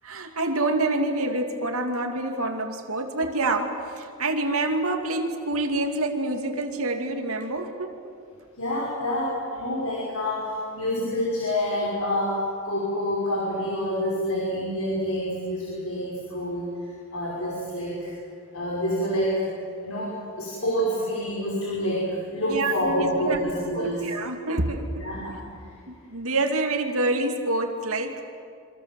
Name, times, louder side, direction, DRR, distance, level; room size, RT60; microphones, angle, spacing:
voice 1, 0.0-8.0 9.3-9.4 22.5-22.7 23.0-23.4 23.7-25.1 25.9-28.2, right 2 dB, 80° right, 4 dB, 2.5 m, -27 dB
voice 2, 8.6-16.7 17.1-18.1 18.5-19.5 19.8-24.0 25.0-25.4, equal, 80° left, -4 dB, 5.9 m, -27 dB
27.0 x 25.0 x 7.7 m, 2.3 s
head